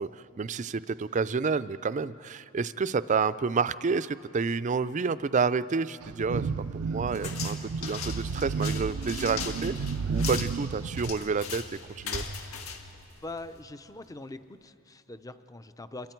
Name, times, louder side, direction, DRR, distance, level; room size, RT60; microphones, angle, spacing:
voice 1, 0.0-6.4 6.7-9.7 10.1-11.6 12.0-12.2, right 5 dB, 35° right, 16 dB, 0.4 m, -29 dB
sound 1, 6.0-11.1, right 5 dB, 90° right, 0.5 m, -32 dB
sound 2, 7.1-13.7, left 5 dB, 75° left, 1.7 m, -39 dB
voice 2, 13.2-16.1, left 2 dB, 15° left, 12 dB, 0.6 m, -42 dB
28.0 x 22.5 x 4.5 m, 2.5 s
head